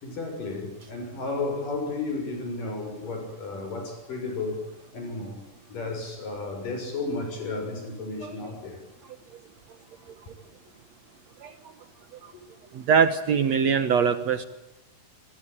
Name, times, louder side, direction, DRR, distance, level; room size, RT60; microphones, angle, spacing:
voice 1, 0.0-4.6 4.9-5.4 5.7-8.8, left 3 dB, 70° left, 4 dB, 8.2 m, -33 dB
voice 2, 12.9-14.4, right 6 dB, 60° right, 10 dB, 2.1 m, -22 dB
26.5 x 20.5 x 8.8 m, 0.92 s
omnidirectional pair, 4.0 m